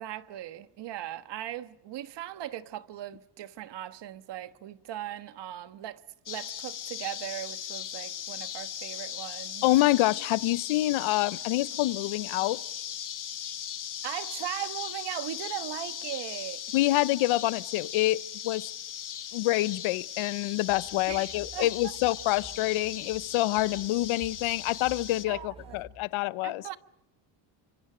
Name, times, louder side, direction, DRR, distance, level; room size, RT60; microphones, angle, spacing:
voice 1, 0.0-6.0 6.3-9.7 14.0-16.6 21.1-21.7 25.3-25.9 26.4-26.8, right 12 dB, 60° right, 1.4 m, -38 dB
sound 1, 6.3-25.3, left 9 dB, 40° left, 1.4 m, -38 dB
voice 2, 9.6-12.6 16.7-18.7 19.3-26.6, left 17 dB, 80° left, 0.9 m, -27 dB
sound 2, 20.7-25.8, right 2 dB, 10° right, 5.7 m, -51 dB
30.0 x 25.5 x 5.1 m
cardioid pair, 125°, 48 cm